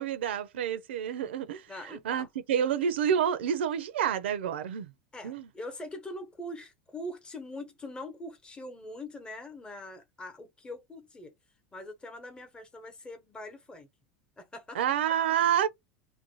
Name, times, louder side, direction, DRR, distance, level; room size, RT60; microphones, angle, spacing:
voice 1, 0.0-4.9 5.2-5.5 14.7-15.7, right 9 dB, 85° right, 0.4 m, -29 dB
voice 2, 1.7-2.3 5.1-11.3 11.7-13.9 14.4-14.8, left 1 dB, 15° left, 0.9 m, -43 dB
2.5 x 2.2 x 3.0 m
hypercardioid pair, 95°, 6 cm